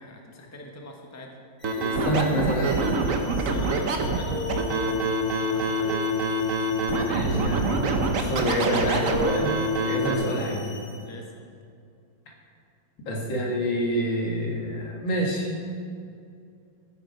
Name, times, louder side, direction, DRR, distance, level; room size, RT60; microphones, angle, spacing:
voice 1, 0.0-1.3 3.3-6.0 11.0-11.3, left 1 dB, 10° left, 1 dB, 0.9 m, -42 dB
sound 1, 1.6-11.2, left 3 dB, 55° left, 2.6 m, -45 dB
Scratching (performance technique), 1.6-10.1, right 2 dB, 50° right, 1.2 m, -25 dB
voice 2, 1.8-2.8 7.0-7.7 8.2-9.5 9.8-10.7 13.1-15.5, equal, 90° left, -2 dB, 2.7 m, -27 dB
sound 2, 4.0-6.5 7.8-8.4 8.7-9.6 9.9-10.4 10.7-10.8, equal, 35° left, 4.0 m, -34 dB
14.0 x 8.7 x 5.3 m, 2.4 s
omnidirectional pair, 2.0 m